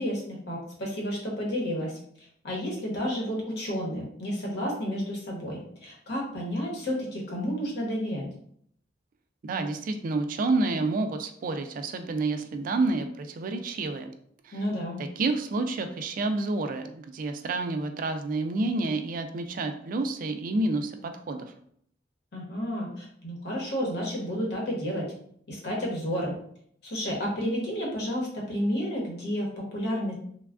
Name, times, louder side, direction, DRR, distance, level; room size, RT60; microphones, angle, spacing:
voice 1, 0.0-8.3 14.5-15.0 22.3-25.1 25.5-26.3 26.8-30.1, equal, 60° left, -3 dB, 1.0 m, -31 dB
voice 2, 9.4-14.1 14.4-14.6 15.0-21.5, right 3 dB, 45° right, 7 dB, 0.3 m, -29 dB
3.3 x 2.2 x 2.4 m, 0.65 s
head